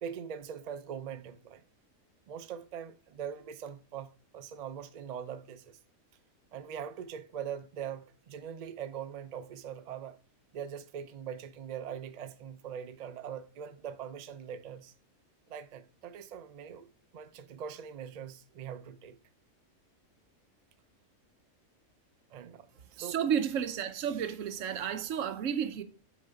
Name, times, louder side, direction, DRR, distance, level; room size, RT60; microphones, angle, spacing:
voice 1, 0.0-1.6 2.3-5.8 6.5-10.2 10.5-14.9 15.5-16.9 17.1-19.2 22.3-22.7 22.9-23.2, right 8 dB, 90° right, 0.3 m, -42 dB
voice 2, 23.0-25.8, right 8 dB, 70° right, 1.0 m, -32 dB
6.7 x 4.1 x 3.9 m
omnidirectional pair, 1.4 m